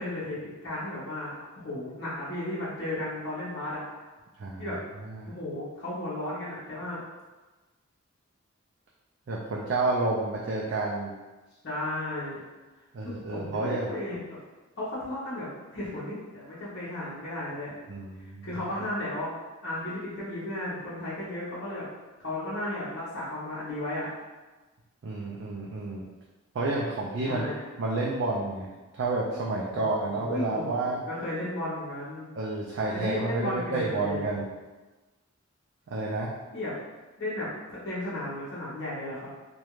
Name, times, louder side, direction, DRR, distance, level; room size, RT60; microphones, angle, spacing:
voice 1, 0.0-4.1 4.6-4.8 5.3-7.0 11.6-12.4 13.0-14.4 14.8-17.8 18.2-19.3 19.6-21.8 22.2-24.1 27.2-27.7 29.7-32.3 32.9-34.2 36.5-36.7 37.2-39.3, left 1 dB, 55° left, -9 dB, 0.8 m, -34 dB
voice 2, 4.4-5.3 9.3-11.1 12.9-13.9 17.9-18.5 25.0-26.0 26.5-27.5 27.8-31.1 32.4-34.5 35.9-36.3, right 2 dB, 60° right, -4 dB, 0.3 m, -30 dB
2.4 x 2.2 x 3.0 m, 1.2 s
head